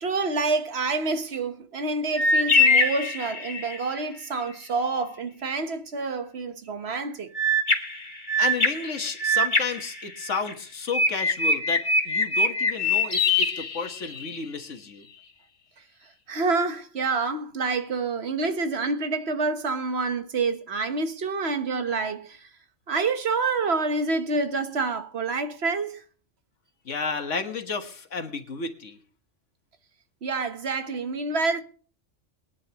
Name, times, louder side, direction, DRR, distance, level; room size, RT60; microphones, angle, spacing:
voice 1, 0.0-7.3 16.3-22.5 22.9-26.0 30.2-31.6, right 3 dB, 60° right, 1.3 m, -27 dB
sound 1, 2.2-3.9 7.3-10.5 10.9-14.4, left 2 dB, 40° left, 1.7 m, -23 dB
voice 2, 8.4-15.1 26.9-29.0, left 5 dB, 85° left, 1.8 m, -32 dB
23.0 x 9.8 x 3.0 m
omnidirectional pair, 1.2 m